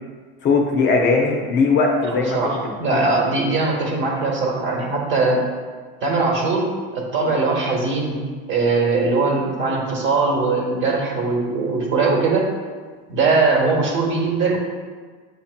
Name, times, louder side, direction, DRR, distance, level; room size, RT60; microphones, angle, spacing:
voice 1, 0.4-2.4 2.6-3.0, left 4 dB, 35° left, 0 dB, 0.7 m, -19 dB
voice 2, 2.1-5.4 6.0-6.7 6.9-8.2 8.5-12.5 13.1-14.6, right 3 dB, 40° right, -1 dB, 1.1 m, -20 dB
7.9 x 2.8 x 2.2 m, 1.5 s
supercardioid pair, 135°, 29 cm